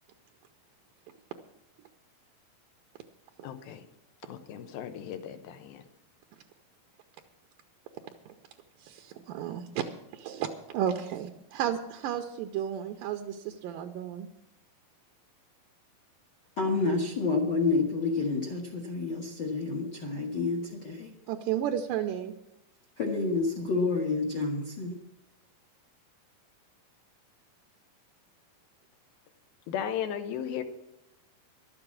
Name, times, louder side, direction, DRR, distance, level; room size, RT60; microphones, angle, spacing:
voice 1, 3.4-3.8 4.3-5.8 29.7-30.6, left 9 dB, 85° left, 9 dB, 2.9 m, -35 dB
voice 2, 8.8-9.8 10.1-14.3 21.3-22.3, right 10 dB, 80° right, 5 dB, 2.2 m, -33 dB
voice 3, 16.6-21.1 23.0-25.0, left 3 dB, 55° left, 2 dB, 1.2 m, -29 dB
12.5 x 7.9 x 8.5 m, 0.83 s
omnidirectional pair, 4.2 m